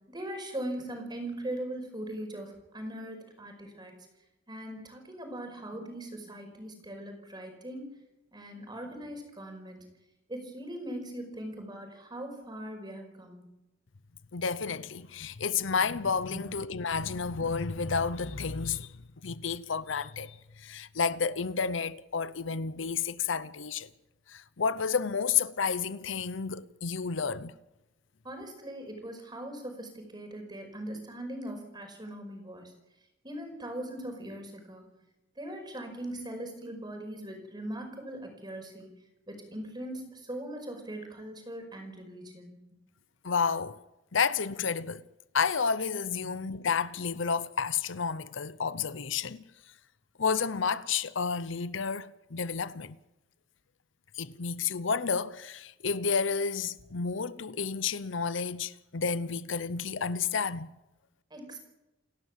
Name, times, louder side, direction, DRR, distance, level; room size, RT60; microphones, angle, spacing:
voice 1, 0.1-3.9 4.5-7.9 8.3-9.8 10.3-13.5 16.3-16.4 28.2-32.6 33.2-34.8 35.4-38.9 39.3-42.6 46.2-46.4 61.3-61.6, right 1 dB, 20° right, 5.2 m, -40 dB
voice 2, 14.3-18.9 19.2-23.9 24.3-27.5 43.2-43.8 44.1-45.0 45.3-49.4 50.2-53.0 54.2-60.7, left 5 dB, 75° left, 0.8 m, -31 dB
29.0 x 12.0 x 7.4 m
head